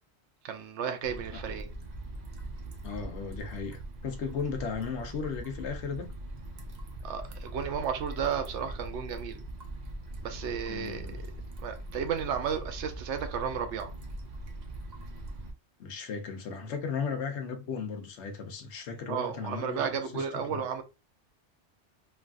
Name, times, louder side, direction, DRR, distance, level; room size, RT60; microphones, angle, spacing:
voice 1, 0.4-1.7 7.0-9.4 10.2-11.3 11.6-13.9 19.1-20.8, right 7 dB, 80° right, 0.9 m, -33 dB
sound 1, 1.0-15.5, right 1 dB, 50° right, 0.6 m, -41 dB
voice 2, 2.8-6.1 10.7-11.2 15.8-20.6, left 5 dB, 75° left, 0.9 m, -36 dB
3.3 x 2.4 x 2.3 m
omnidirectional pair, 1.2 m